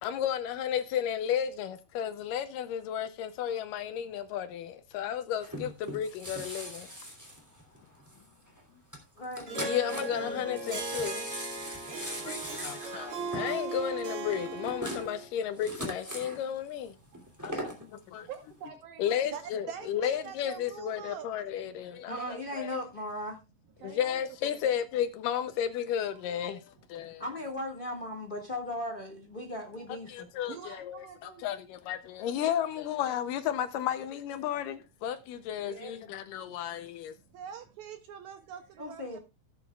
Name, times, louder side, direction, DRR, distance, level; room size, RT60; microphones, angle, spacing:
voice 1, 0.0-6.9 9.6-11.3 11.8-17.0 17.4-17.5 18.1-18.3 19.0-22.1 22.6-22.7 23.8-27.2 30.1-31.0 31.4-37.1, left 9 dB, 75° left, 2.2 m, -33 dB
sound 1, 5.4-8.2 8.5-8.6 8.9-9.0 9.2-10.3 10.6-16.4 17.1-17.8 18.3-18.4, equal, 5° right, 2.1 m, -40 dB
voice 2, 9.2-10.4 12.5-13.1 22.1-23.4 27.2-30.3 38.8-39.2, left 1 dB, 45° left, 0.6 m, -38 dB
Harp, 9.5-15.3, right 3 dB, 45° right, 2.3 m, -37 dB
voice 3, 17.0-17.9 18.3-19.3 19.9-20.0 21.2-21.3 21.6-21.8 22.1-22.4 23.8-24.0 25.5-25.6 26.1-26.9 29.8-31.5 32.5-32.9 35.4-37.7 38.7-39.1, right 8 dB, 65° right, 1.7 m, -50 dB
voice 4, 19.3-21.4 23.8-24.7 37.3-39.2, right 8 dB, 90° right, 1.6 m, -44 dB
16.5 x 8.6 x 2.3 m
omnidirectional pair, 4.1 m